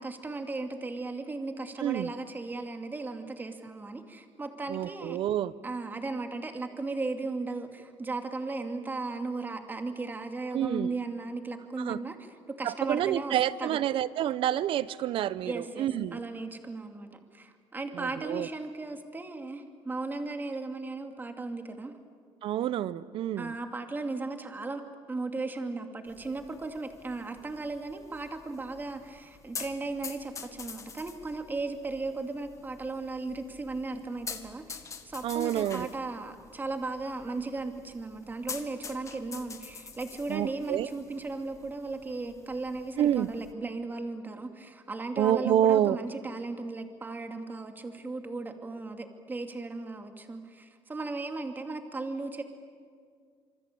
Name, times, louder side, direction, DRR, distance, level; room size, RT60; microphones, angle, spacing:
voice 1, 0.0-5.2 5.6-12.2 12.5-13.8 15.5-17.1 17.3-21.9 23.4-24.8 25.1-34.8 35.0-52.4, right 3 dB, 20° right, 6 dB, 2.5 m, -36 dB
voice 2, 4.7-5.5 10.5-10.9 11.8-12.0 12.6-16.2 17.9-18.5 22.4-23.5 35.2-35.9 40.3-40.9 43.0-43.3 45.2-46.0, right 11 dB, 60° right, 17 dB, 0.9 m, -28 dB
sound 1, 26.1-43.5, left 5 dB, 30° left, 2.1 m, -47 dB
27.0 x 25.0 x 8.6 m, 2.1 s
cardioid pair, 125°, 10 cm